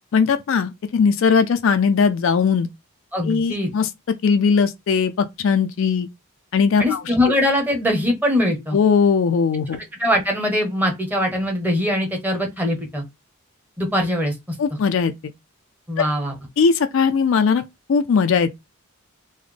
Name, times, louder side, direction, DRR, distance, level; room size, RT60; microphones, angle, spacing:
voice 1, 0.1-2.7 3.2-3.9 4.2-6.1 6.5-7.0 8.7-9.8 14.6-15.1 16.6-18.5, left 5 dB, 60° left, 0.3 m, -19 dB
voice 2, 3.1-3.7 6.8-8.8 10.0-13.0 13.8-14.3 15.9-16.3, left 1 dB, 10° right, 0.8 m, -21 dB
3.9 x 2.1 x 3.2 m
head